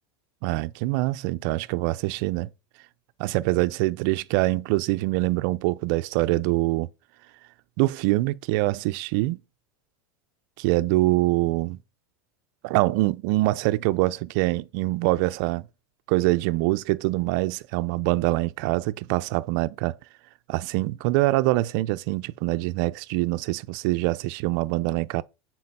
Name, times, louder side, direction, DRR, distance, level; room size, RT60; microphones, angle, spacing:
voice 1, 0.4-2.5 3.2-6.9 7.8-9.4 10.6-11.8 12.6-15.7 16.1-20.0 20.5-25.2, right 19 dB, 45° right, 0.4 m, -24 dB
6.6 x 4.0 x 4.1 m
supercardioid pair, 155°, 14 cm